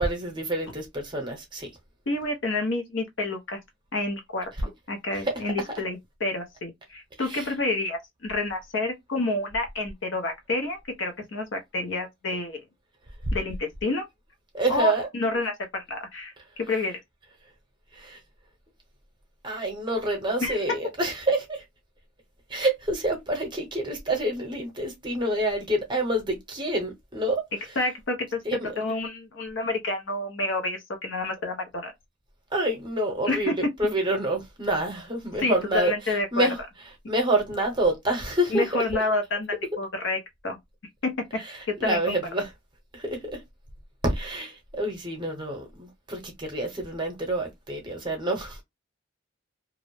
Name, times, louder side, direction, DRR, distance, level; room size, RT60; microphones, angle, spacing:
voice 1, 0.0-1.7 5.2-5.3 5.7-5.8 7.2-7.5 14.5-15.1 17.9-18.2 19.4-21.6 22.5-27.4 28.4-28.7 32.5-36.6 37.1-38.8 41.4-42.5 42.9-43.4 44.0-48.6, right 1 dB, 25° right, 0.8 m, -27 dB
voice 2, 2.1-3.6 3.9-4.5 4.9-12.6 13.3-14.0 14.7-17.0 20.4-20.6 27.8-31.9 33.3-33.6 35.4-36.5 38.5-40.6 41.0-41.2 41.7-42.2, left 2 dB, 65° left, 0.6 m, -29 dB
2.5 x 2.0 x 3.0 m
head